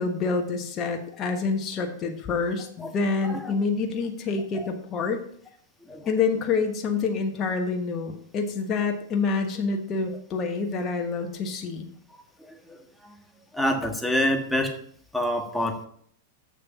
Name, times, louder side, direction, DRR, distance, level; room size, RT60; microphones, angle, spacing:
voice 1, 0.0-5.2 6.1-11.9, left 4 dB, 35° left, 3 dB, 1.3 m, -27 dB
voice 2, 13.5-14.7 15.1-15.9, left 1 dB, ahead, 3 dB, 1.5 m, -26 dB
7.3 x 6.6 x 5.8 m, 0.62 s
hypercardioid pair, 105°, 0 cm